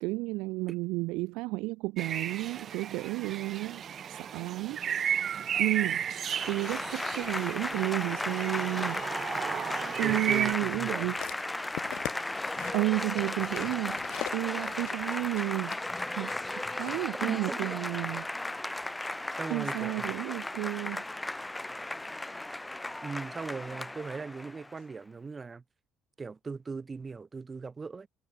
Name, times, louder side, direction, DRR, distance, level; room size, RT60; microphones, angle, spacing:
voice 1, 0.0-3.8 4.1-4.8 5.6-6.0 6.5-9.0 10.0-11.2 12.7-14.0 14.3-15.8 16.2-18.3 19.5-21.0, right 23 dB, 80° right, 0.4 m, -32 dB
sound 1, 2.0-10.5, right 8 dB, 50° right, 2.2 m, -34 dB
Applause / Crowd, 6.2-24.8, left 2 dB, 10° left, 2.7 m, -35 dB
voice 2, 10.0-11.1 17.2-17.8 19.3-20.2 23.0-25.6 26.2-28.1, right 4 dB, 30° right, 3.7 m, -39 dB
sound 2, 10.6-17.0 17.7-17.8, left 17 dB, 75° left, 1.4 m, -43 dB
supercardioid pair, 80°, 0 cm